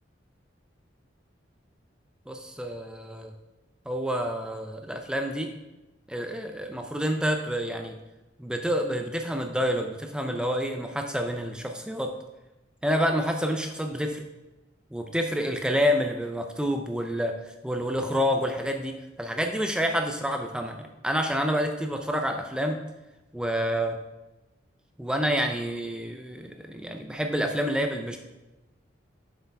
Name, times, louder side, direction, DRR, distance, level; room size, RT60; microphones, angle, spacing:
voice 1, 2.3-3.3 3.9-5.5 6.1-8.0 8.4-12.1 12.8-14.2 14.9-22.8 23.3-24.0 25.0-28.2, equal, 5° right, 4 dB, 0.5 m, -28 dB
7.8 x 6.4 x 3.5 m, 1.0 s
head